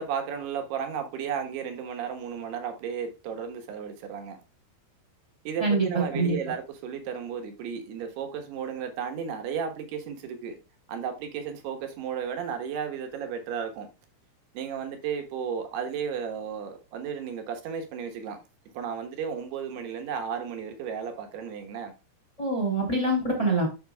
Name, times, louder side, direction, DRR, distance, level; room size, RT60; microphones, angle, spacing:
voice 1, 0.0-4.4 5.4-10.6 10.9-13.9 14.5-18.4 18.7-21.9, right 7 dB, 85° right, 3.4 m, -34 dB
voice 2, 5.6-6.3 22.4-23.7, right 2 dB, 10° left, 2.7 m, -25 dB
12.0 x 5.7 x 2.3 m
omnidirectional pair, 4.5 m